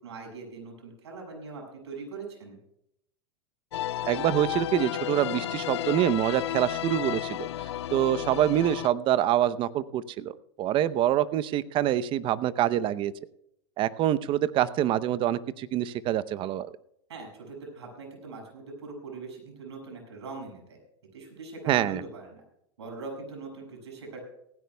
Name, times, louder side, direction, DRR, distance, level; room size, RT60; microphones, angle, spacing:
voice 1, 0.0-2.6 17.1-20.8 21.1-22.4 22.8-24.2, right 3 dB, 90° right, 1 dB, 6.6 m, -41 dB
sound 1, 3.7-8.9, left 13 dB, 85° left, 0.4 m, -32 dB
voice 2, 4.0-7.5 7.9-13.1 13.8-16.7 21.7-22.0, right 12 dB, 40° right, 16 dB, 0.7 m, -26 dB
18.5 x 16.0 x 2.3 m, 0.77 s
hypercardioid pair, 115°, 14 cm